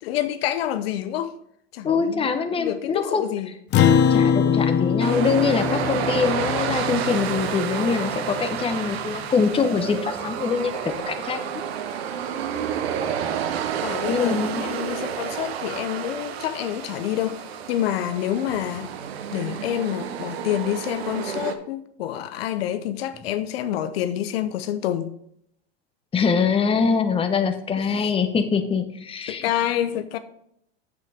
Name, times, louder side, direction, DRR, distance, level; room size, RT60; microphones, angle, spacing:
voice 1, 0.0-1.3 1.7-2.3 2.6-3.5 13.8-18.9 19.3-25.1 27.8-28.1 29.3-30.2, left 11 dB, 70° left, 0.7 m, -28 dB
voice 2, 1.8-3.2 4.1-10.8 11.1-11.5 14.1-14.6 26.1-29.4, left 5 dB, 20° left, 1.0 m, -23 dB
Acoustic guitar, 3.7-8.4, left 7 dB, 35° left, 0.8 m, -22 dB
sound 1, 5.0-21.5, right 8 dB, 80° right, 1.0 m, -30 dB
8.1 x 7.9 x 3.5 m
hypercardioid pair, 110°, 31 cm